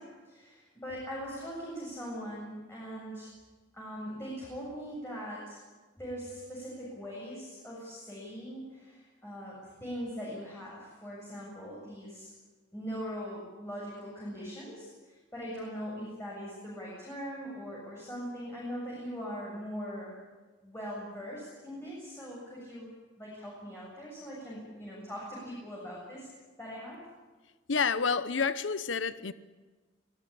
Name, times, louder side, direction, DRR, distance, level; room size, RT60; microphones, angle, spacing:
voice 1, 0.0-3.3 3.7-5.6 6.0-12.3 12.7-20.1 20.6-22.9 23.2-26.3 26.6-27.0, equal, 15° left, 7.6 m, -41 dB
voice 2, 27.7-29.3, left 5 dB, 85° left, 0.9 m, -29 dB
25.5 x 17.5 x 8.5 m
head